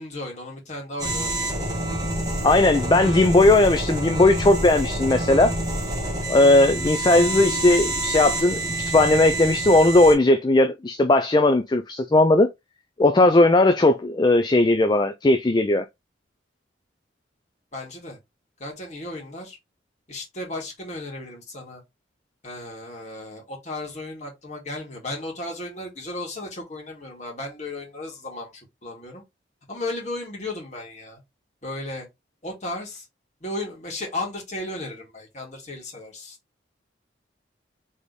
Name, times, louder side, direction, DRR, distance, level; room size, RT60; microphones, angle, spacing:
voice 1, 0.0-1.7 17.7-18.2 18.6-19.6 20.1-21.8 22.4-29.2 29.7-31.2 31.6-32.1 32.4-33.1 33.4-36.4, left 2 dB, 40° left, 1.9 m, -35 dB
sound 1, 1.0-10.1, right 1 dB, 20° right, 1.5 m, -27 dB
voice 2, 2.4-5.5 6.3-12.5 13.0-15.8, left 2 dB, 25° left, 0.4 m, -18 dB
4.1 x 3.5 x 3.1 m
head